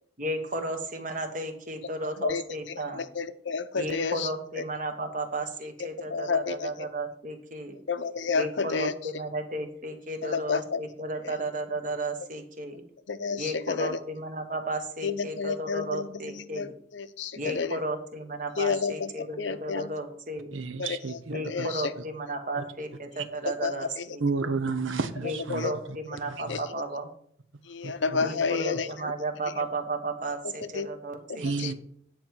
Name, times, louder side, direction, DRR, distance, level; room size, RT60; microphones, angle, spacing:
voice 1, 0.2-3.0 3.7-7.8 8.3-12.8 13.4-16.7 17.3-20.5 21.3-24.2 25.2-27.1 28.2-31.7, right 1 dB, 40° right, 1.3 m, -34 dB
voice 2, 2.9-4.3 4.6-4.7 6.1-6.9 7.9-8.9 10.2-10.8 11.2-11.3 13.1-14.0 15.0-17.8 18.6-19.9 20.8-21.9 23.6-24.1 25.5-25.7 26.5-26.6 27.7-29.1 30.7-30.9 31.6-31.7, left 5 dB, 70° left, 0.7 m, -30 dB
voice 3, 20.5-21.7 22.6-22.7 23.2-23.3 24.2-25.7 26.3-26.6 27.8-28.3 31.4-31.7, right 4 dB, 80° right, 0.8 m, -31 dB
9.7 x 4.5 x 7.4 m
head